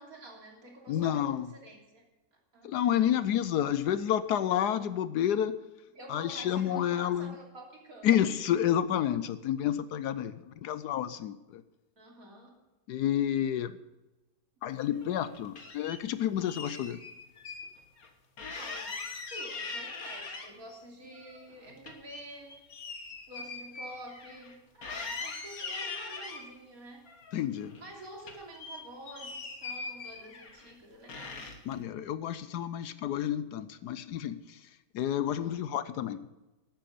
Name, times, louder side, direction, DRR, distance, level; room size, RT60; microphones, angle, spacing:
voice 1, 0.0-1.4 1.6-2.0 2.5-2.9 5.9-8.1 12.0-12.6 18.5-22.6 22.8-23.0 23.3-27.1 27.8-31.4 35.2-35.5, right 1 dB, 55° right, -1 dB, 3.3 m, -48 dB
voice 2, 0.9-1.5 2.6-5.6 6.1-7.3 8.0-11.6 12.9-13.8 14.6-17.0 27.3-27.8 31.7-36.3, left 10 dB, 75° left, 14 dB, 1.2 m, -30 dB
sound 1, 14.9-16.0 16.4-17.7 18.0-18.1 18.4-20.8 21.1-24.5 24.8-26.5 27.1-27.9 28.2-30.7 31.1-31.7, left 4 dB, 55° left, 1.9 m, -41 dB
13.0 x 9.3 x 6.8 m, 1.0 s
omnidirectional pair, 1.8 m